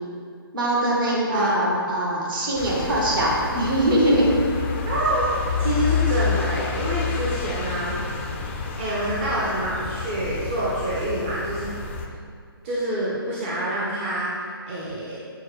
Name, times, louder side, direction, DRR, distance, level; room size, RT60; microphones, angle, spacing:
voice 1, 0.5-4.3, right 1 dB, 60° right, -4 dB, 1.1 m, -22 dB
voice 2, 1.3-1.6 4.9-5.2 5.6-7.9 8.8-11.7 12.6-15.2, right 1 dB, 30° right, -7 dB, 0.5 m, -27 dB
sound 1, 2.6-12.1, left 6 dB, 30° left, 0.3 m, -29 dB
6.2 x 2.1 x 3.1 m, 2.1 s
figure-of-eight pair, 140°, 13 cm